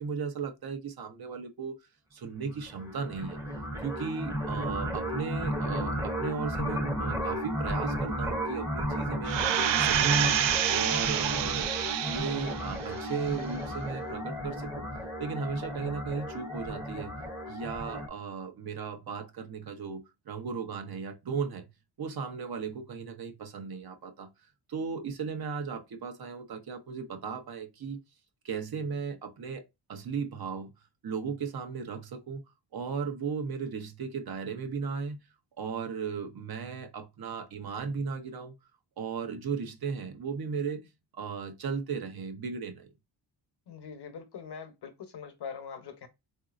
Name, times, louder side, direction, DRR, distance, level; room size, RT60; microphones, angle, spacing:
voice 1, 0.0-1.8 2.1-3.4 3.8-9.4 9.8-10.4 10.7-11.7 12.1-14.9 15.2-17.1 17.5-21.7 22.0-24.3 24.7-28.0 28.4-29.6 29.9-30.7 31.0-32.4 32.7-35.2 35.6-38.5 39.0-40.8 41.2-42.9, right 5 dB, 55° right, 0.8 m, -36 dB
sound 1, 2.5-18.1, equal, 10° right, 0.8 m, -34 dB
sound 2, 9.3-12.7 13.1-13.2, right 10 dB, 85° right, 0.5 m, -28 dB
voice 2, 43.7-46.1, left 6 dB, 65° left, 1.0 m, -42 dB
3.9 x 2.7 x 2.5 m
wide cardioid pair, 105°, 43 cm